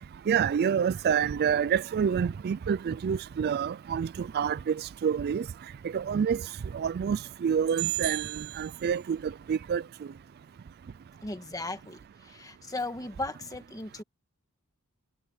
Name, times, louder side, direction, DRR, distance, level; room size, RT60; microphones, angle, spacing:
voice 1, 0.3-5.5 5.9-6.4 6.7-9.8, right 7 dB, 45° right, 0.3 m, -27 dB
voice 2, 11.2-14.0, left 2 dB, 15° left, 1.6 m, -37 dB
head